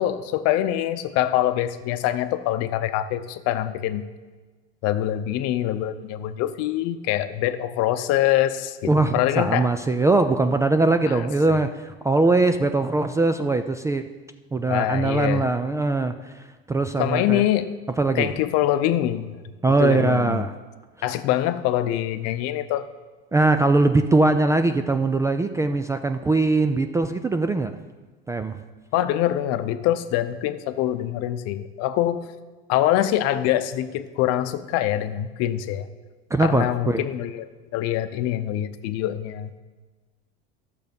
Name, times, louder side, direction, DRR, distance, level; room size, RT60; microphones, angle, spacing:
voice 1, 0.0-4.1 4.8-9.7 11.1-11.2 14.7-15.5 17.0-17.7 18.1-19.5 19.8-20.4 21.0-22.9 28.9-32.2 32.7-35.9 36.4-39.5, left 12 dB, 55° left, 11 dB, 0.7 m, -24 dB
voice 2, 8.9-14.1 14.5-17.4 18.0-18.3 19.6-20.5 23.3-27.8 28.3-28.6 36.3-37.0, right 2 dB, 10° right, 8 dB, 0.3 m, -21 dB
11.5 x 6.9 x 5.3 m, 1.3 s
supercardioid pair, 120°, 29 cm